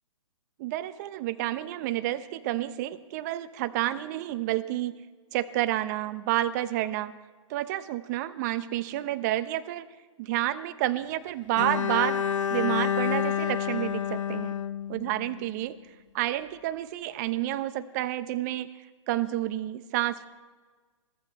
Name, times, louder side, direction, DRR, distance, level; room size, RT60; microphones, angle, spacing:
voice 1, 0.6-4.9 5.3-7.1 7.5-9.9 10.2-12.2 12.5-14.5 14.9-15.7 16.1-18.7 19.1-20.3, right 14 dB, 30° right, 12 dB, 0.8 m, -29 dB
Bowed string instrument, 11.6-15.6, left 8 dB, 65° left, 0.6 m, -29 dB
22.0 x 13.5 x 4.3 m, 1.4 s
hypercardioid pair, 135°, 17 cm